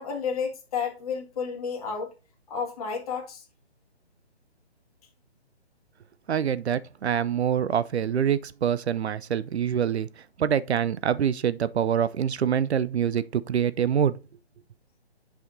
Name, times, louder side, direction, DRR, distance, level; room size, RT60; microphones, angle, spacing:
voice 1, 0.0-2.1 2.5-3.5, left 6 dB, 35° left, 1.8 m, -31 dB
voice 2, 6.3-10.1 10.4-14.2, right 8 dB, 75° right, 0.5 m, -25 dB
8.7 x 5.7 x 2.6 m
hypercardioid pair, 155°, 33 cm